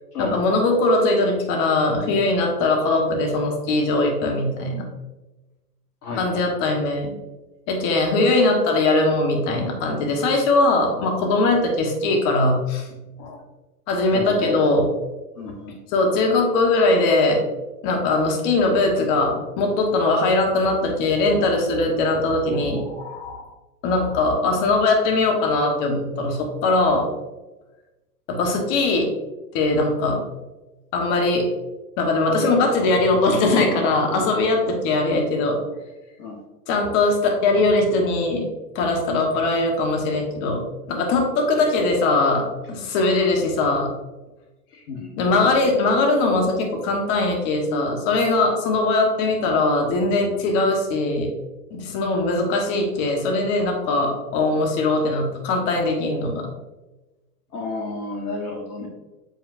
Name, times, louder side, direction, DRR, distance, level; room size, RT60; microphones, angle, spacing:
voice 1, 0.2-4.9 6.2-7.1 7.7-12.9 13.2-13.4 13.9-14.9 15.9-17.4 17.8-23.4 23.8-27.1 28.3-29.1 29.5-30.2 30.9-31.5 32.0-35.6 36.7-38.5 38.7-43.9 45.2-51.3 51.7-56.5 58.8-58.9, left 2 dB, 40° left, 2 dB, 1.5 m, -21 dB
voice 2, 6.0-6.4 14.1-14.5 15.4-15.8 34.7-34.8 36.2-36.4 44.7-45.7 57.5-58.9, left 3 dB, 65° left, 1 dB, 1.4 m, -32 dB
7.2 x 5.2 x 2.6 m, 1.1 s
hypercardioid pair, 110°, 48 cm